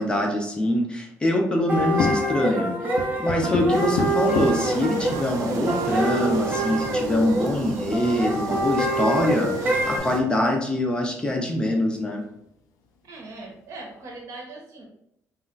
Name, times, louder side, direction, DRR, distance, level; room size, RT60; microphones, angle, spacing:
voice 1, 0.0-2.7 3.2-12.2, left 1 dB, 15° left, 1 dB, 0.4 m, -24 dB
sound 1, 1.7-10.0, right 1 dB, 30° right, 0.6 m, -26 dB
sound 2, 1.8-2.6 3.0-4.8 5.5-5.6 5.8-5.9 6.6-7.5 9.3-9.4 9.9-10.3 10.8-10.9 11.4-12.3, left 4 dB, 85° left, 0.4 m, -32 dB
sound 3, 3.7-10.2, right 4 dB, 80° right, 0.4 m, -35 dB
voice 2, 13.0-14.9, right 2 dB, 60° right, 0 dB, 0.8 m, -40 dB
2.3 x 2.1 x 3.8 m, 0.75 s
cardioid pair, 150°, 6 cm